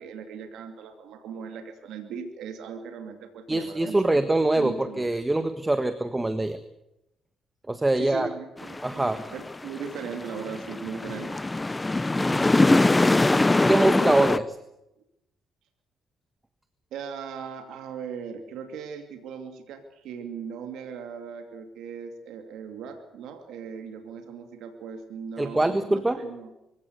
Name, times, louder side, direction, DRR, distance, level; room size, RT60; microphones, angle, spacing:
voice 1, 0.0-4.2 4.5-5.1 8.0-11.4 16.9-26.5, right 6 dB, 85° right, 6 dB, 2.7 m, -38 dB
voice 2, 3.5-6.6 7.7-8.3 8.8-9.2 12.2-12.5 13.6-14.6 25.4-26.2, right 2 dB, 15° right, 10 dB, 1.5 m, -24 dB
sound 1, 8.6-14.4, left 2 dB, 15° left, 0.8 m, -23 dB
23.5 x 16.5 x 8.2 m, 0.87 s
cardioid pair, 90°, 0 cm